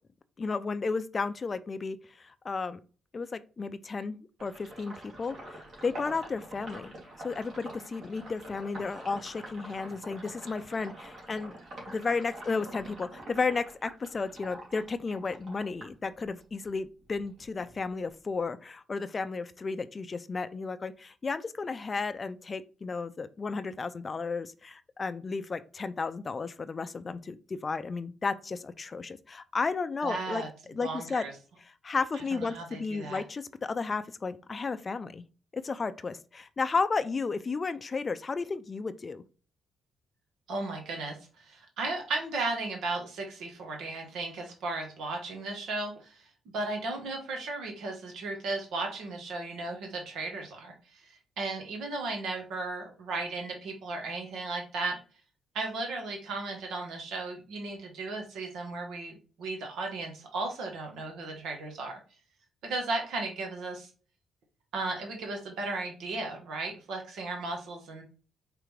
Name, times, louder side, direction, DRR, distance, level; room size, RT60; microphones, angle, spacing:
voice 1, 0.4-2.8 3.1-4.2 4.4-6.9 7.2-11.5 11.9-30.4 30.7-31.2 31.6-35.2 35.5-39.2, left 4 dB, 35° left, 13 dB, 0.4 m, -33 dB
Sink (filling or washing), 4.4-16.7 17.0-18.4, right 1 dB, 55° right, 2.5 m, -46 dB
voice 2, 30.0-30.5 30.8-31.3 32.1-33.2 40.5-55.0 55.5-62.0 62.6-63.9 64.7-68.0, right 3 dB, 80° right, 3 dB, 1.1 m, -35 dB
4.9 x 3.3 x 3.2 m, 0.37 s
cardioid pair, 90°, 0 cm